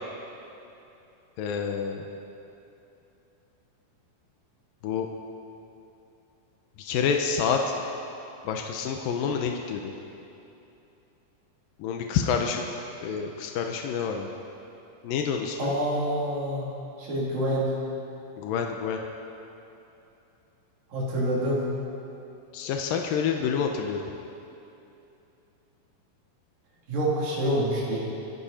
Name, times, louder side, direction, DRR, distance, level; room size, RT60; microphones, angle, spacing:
voice 1, 1.4-2.0 4.8-5.1 6.8-7.6 8.4-9.9 11.8-12.6 13.0-14.3 15.0-15.7 18.4-19.0 22.5-24.1, left 6 dB, 90° left, 3 dB, 2.6 m, -28 dB
voice 2, 15.6-16.7 17.0-17.7 20.9-21.6 26.9-28.0, right 1 dB, 75° right, -6 dB, 5.1 m, -27 dB
27.0 x 10.5 x 4.3 m, 2.8 s
omnidirectional pair, 4.0 m